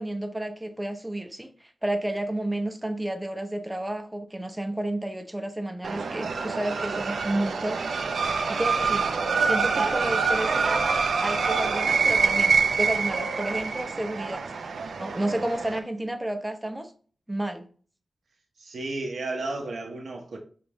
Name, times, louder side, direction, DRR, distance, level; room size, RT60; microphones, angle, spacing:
voice 1, 0.0-7.8 8.5-9.1 9.4-14.4 15.0-16.9 17.3-17.7, right 1 dB, 15° right, 0.6 m, -31 dB
sound 1, 5.8-15.8, right 4 dB, 90° right, 0.5 m, -26 dB
voice 2, 18.6-20.4, right 2 dB, 75° right, 0.9 m, -33 dB
5.1 x 2.5 x 3.0 m
cardioid pair, 70°, 0 cm